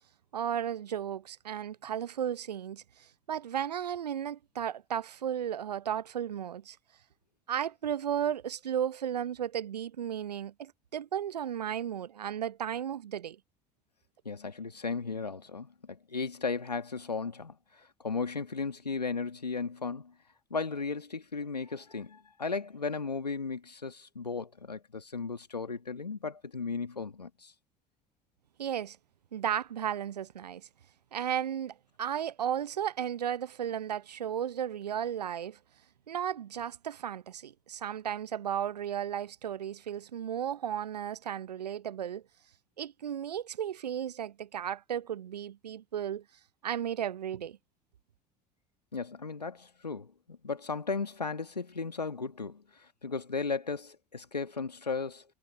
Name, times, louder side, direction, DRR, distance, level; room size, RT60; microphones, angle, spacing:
voice 1, 0.3-6.8 7.5-13.4 28.6-29.0 29.3-30.7 31.1-35.6 36.1-42.2 42.8-46.2 46.6-47.6, right 9 dB, 80° right, 0.7 m, -34 dB
voice 2, 14.3-20.1 20.5-27.5 48.9-52.6 53.0-55.2, left 4 dB, 90° left, 2.0 m, -35 dB
figure-of-eight pair, 65°, 20 cm